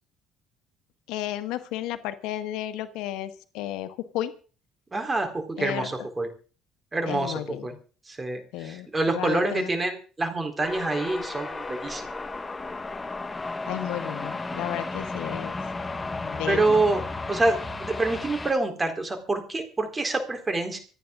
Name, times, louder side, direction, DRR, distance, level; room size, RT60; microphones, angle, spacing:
voice 1, 1.1-4.3 5.6-6.1 7.1-7.7 8.5-9.7 13.7-15.6 16.2-16.8, left 13 dB, 85° left, 10 dB, 1.3 m, -33 dB
voice 2, 4.9-6.3 6.9-7.3 7.6-7.7 8.1-12.2 16.5-17.0 17.3-20.8, right 2 dB, 20° right, 5 dB, 4.0 m, -26 dB
sound 1, 10.6-18.5, left 3 dB, 20° left, 1.4 m, -34 dB
26.5 x 9.4 x 3.8 m, 0.39 s
cardioid pair, 105°, 0 cm